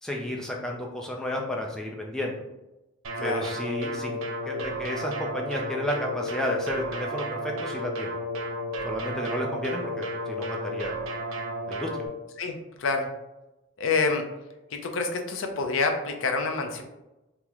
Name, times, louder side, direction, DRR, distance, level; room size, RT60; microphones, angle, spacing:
voice 1, 0.0-2.4 3.2-4.2 4.5-8.2 8.8-11.0 11.7-12.1, left 1 dB, 5° left, -1 dB, 0.4 m, -32 dB
sound 1, 3.0-12.1, equal, 90° right, 0.5 m, -33 dB
voice 2, 3.1-3.4 12.4-13.1 13.8-14.3 14.7-16.8, left 4 dB, 75° left, 4 dB, 0.5 m, -27 dB
3.0 x 2.0 x 3.5 m, 0.98 s
head